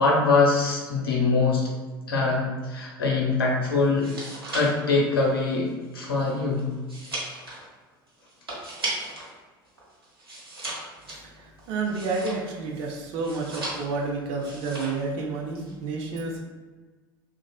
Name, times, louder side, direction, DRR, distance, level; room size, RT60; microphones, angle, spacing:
voice 1, 0.0-1.6 2.1-4.1 4.5-6.7, left 3 dB, 80° left, -2 dB, 0.6 m, -23 dB
sound 1, 3.8-9.3 9.7-12.7 13.2-14.1 14.4-15.1 15.4-15.7, right 2 dB, 85° right, 0.7 m, -37 dB
voice 2, 11.2-16.4, right 3 dB, 50° right, 0 dB, 0.5 m, -30 dB
3.1 x 2.3 x 2.3 m, 1.3 s
figure-of-eight pair, 70°, 12 cm